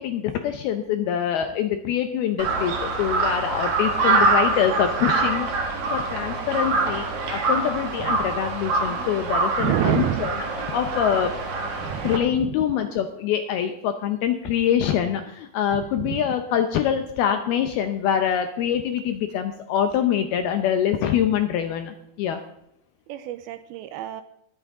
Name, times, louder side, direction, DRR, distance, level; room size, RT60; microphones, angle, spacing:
voice 1, 0.0-5.5 5.9-11.3 12.0-22.4, left 9 dB, 75° left, 7 dB, 2.4 m, -25 dB
Crow, 2.4-12.2, right 3 dB, 50° right, 1.8 m, -25 dB
voice 2, 9.6-10.3 11.8-12.1 12.4-12.5 16.0-16.2 23.1-24.2, right 13 dB, 90° right, 10 dB, 2.2 m, -27 dB
21.5 x 8.9 x 3.6 m, 0.78 s
omnidirectional pair, 5.1 m